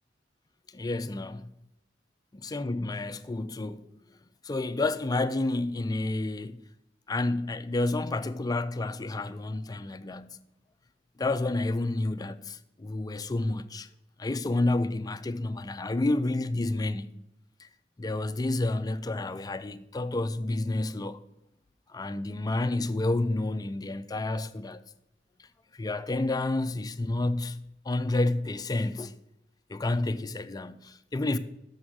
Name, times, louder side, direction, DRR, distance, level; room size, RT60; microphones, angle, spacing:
voice 1, 0.7-1.5 2.3-3.8 4.4-6.6 7.1-10.4 11.2-13.9 14.2-17.1 18.0-21.2 21.9-24.8 25.7-29.1 29.7-31.4, left 2 dB, 20° left, 0.4 m, -30 dB
7.3 x 6.1 x 6.3 m
head